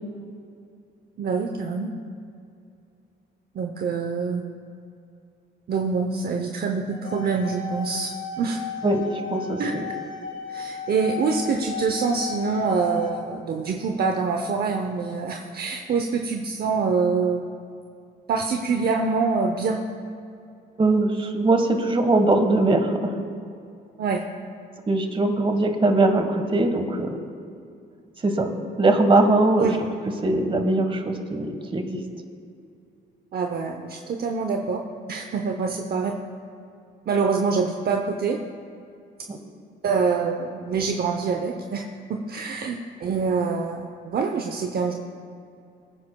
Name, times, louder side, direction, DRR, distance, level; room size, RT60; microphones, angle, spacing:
voice 1, 1.2-1.9 3.5-4.4 5.7-8.6 9.6-9.7 10.5-17.5 18.3-19.8 24.0-24.2 29.6-29.8 33.3-34.8 35.1-36.1 37.1-38.4 39.8-41.8 42.1-44.9, right 5 dB, 50° right, 3 dB, 0.7 m, -25 dB
sound 1, 6.9-13.1, left 6 dB, 85° left, 1.6 m, -35 dB
voice 2, 9.3-9.9 20.8-23.1 24.9-27.1 28.2-28.5 28.8-29.7 30.2-32.0 39.3-39.4, right 2 dB, 25° right, 5 dB, 1.4 m, -21 dB
21.0 x 9.7 x 2.3 m, 2.5 s
cardioid pair, 90°, 20 cm